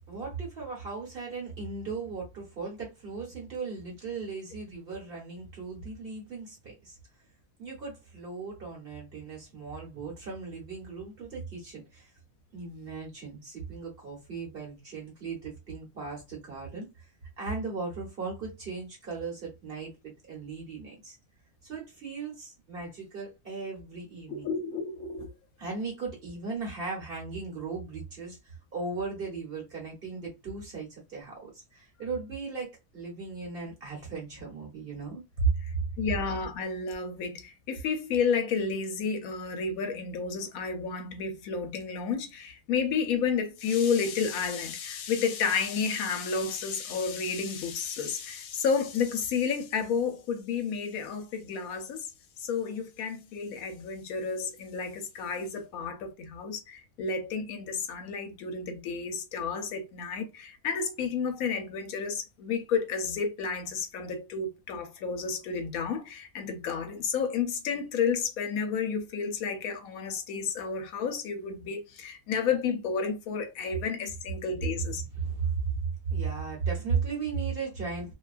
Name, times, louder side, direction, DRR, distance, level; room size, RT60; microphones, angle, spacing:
voice 1, 0.1-7.0 7.6-12.1 12.5-17.1 17.4-21.2 21.6-24.5 25.6-35.5 75.2-75.7 76.1-78.1, right 5 dB, 45° right, 1.1 m, -36 dB
voice 2, 24.3-25.3 36.0-52.1 52.4-75.0, left 5 dB, 75° left, 1.0 m, -31 dB
2.6 x 2.2 x 2.4 m
omnidirectional pair, 1.6 m